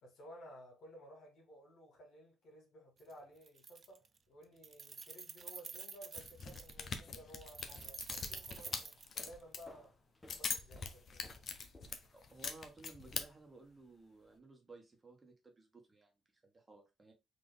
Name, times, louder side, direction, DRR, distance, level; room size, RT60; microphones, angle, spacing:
voice 1, 0.0-9.9 10.3-11.3, equal, 70° left, 2.1 m, -56 dB
Keys jangling, 3.0-3.1 3.4-4.2 4.4-6.8 7.4-9.7, right 5 dB, 40° right, 0.4 m, -49 dB
sound 1, 6.2-9.6 10.3-13.3, left 5 dB, 50° left, 0.8 m, -43 dB
sound 2, 7.6-12.4, left 1 dB, 15° left, 1.0 m, -62 dB
voice 2, 12.1-16.1 16.4-17.1, right 3 dB, 25° right, 1.3 m, -57 dB
4.0 x 2.9 x 3.5 m
cardioid pair, 90°, 0 cm